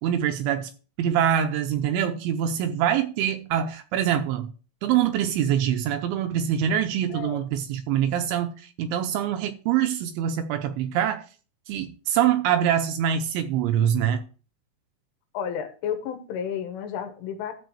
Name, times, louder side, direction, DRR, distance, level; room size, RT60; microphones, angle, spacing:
voice 1, 0.0-0.7 1.0-4.5 4.8-11.2 11.7-14.2, right 9 dB, 80° right, 2.9 m, -24 dB
voice 2, 7.1-7.4 15.4-17.5, left 8 dB, 75° left, 3.6 m, -32 dB
13.0 x 4.5 x 6.8 m
omnidirectional pair, 6.0 m